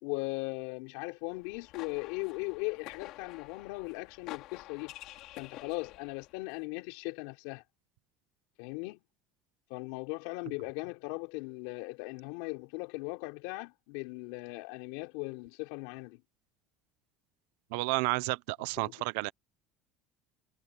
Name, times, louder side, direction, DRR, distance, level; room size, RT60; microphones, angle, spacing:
voice 1, 0.0-4.9 5.4-7.6 8.6-9.0 9.7-16.2 18.8-18.9, left 26 dB, 80° left, 4.7 m, -38 dB
sound 1, 1.3-6.4, left 16 dB, 50° left, 3.1 m, -49 dB
voice 2, 17.7-19.3, right 23 dB, 85° right, 0.8 m, -31 dB
cardioid pair, 180°, 0 cm